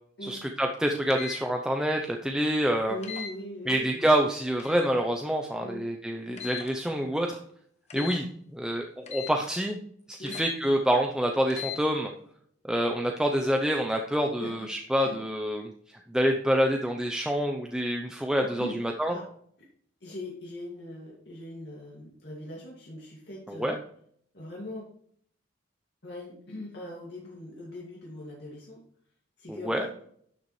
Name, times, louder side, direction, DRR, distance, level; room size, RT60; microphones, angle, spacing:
voice 1, 0.2-3.0 3.7-7.4 7.9-8.2 8.5-9.8 10.1-12.1 12.7-15.7 16.1-19.2 23.5-23.7 29.5-29.9, equal, 5° right, 2 dB, 0.6 m, -27 dB
sound 1, 1.1-1.4 3.0-3.3 4.6-4.9 6.4-6.7 7.9-8.2 9.1-9.4 10.3-10.6 11.5-11.8, left 9 dB, 35° left, 1.1 m, -38 dB
voice 2, 2.9-4.0 5.6-5.8 6.3-6.5 7.9-8.1 10.2-10.4 14.4-14.7 15.0-15.2 18.1-18.8 19.1-19.2 20.0-23.8 24.3-24.9 26.0-28.8 29.4-29.9, left 1 dB, 60° left, -3 dB, 2.2 m, -41 dB
11.5 x 6.9 x 3.2 m, 0.63 s
head